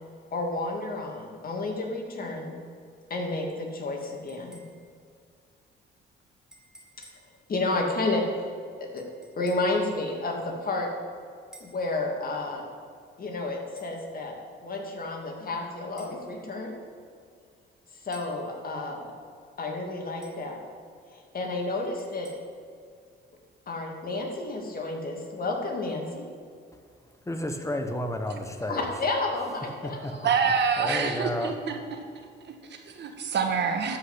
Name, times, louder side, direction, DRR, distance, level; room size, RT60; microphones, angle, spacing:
voice 1, 0.3-2.5 3.1-4.6 7.5-8.5 8.8-9.0 9.4-10.9 11.6-12.7 13.2-14.3 14.6-16.8 18.0-19.1 19.6-20.6 21.1-22.3 23.7-26.3 28.7-30.0, left 2 dB, 45° left, 1 dB, 2.5 m, -31 dB
sound 1, 4.0-5.0 6.5-7.3 9.0-9.8 11.5-11.9 13.8-14.0 16.0-16.2 18.1-18.4 20.2-20.5 22.0-22.3, right 1 dB, 5° right, 2.2 m, -53 dB
voice 2, 27.2-28.8 29.8-30.3 30.8-31.5, left 1 dB, 15° left, 5 dB, 1.3 m, -31 dB
voice 3, 30.2-31.8 32.4-34.0, right 6 dB, 60° right, 5 dB, 1.6 m, -27 dB
12.5 x 5.6 x 8.1 m, 2.2 s
cardioid pair, 90°, 20 cm